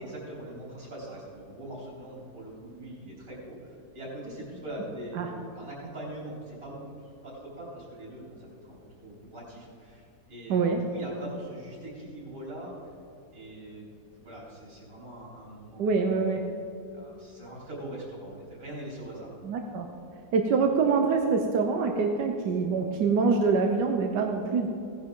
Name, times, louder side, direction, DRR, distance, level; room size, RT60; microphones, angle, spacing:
voice 1, 0.0-12.9 13.3-13.9 14.1-16.4 16.9-19.3, right 1 dB, 60° right, -5 dB, 4.2 m, -42 dB
voice 2, 10.5-10.8 15.8-16.4 19.4-19.9 20.3-24.7, right 4 dB, 85° right, 3 dB, 1.5 m, -25 dB
16.5 x 10.5 x 3.8 m, 2.7 s
omnidirectional pair, 1.8 m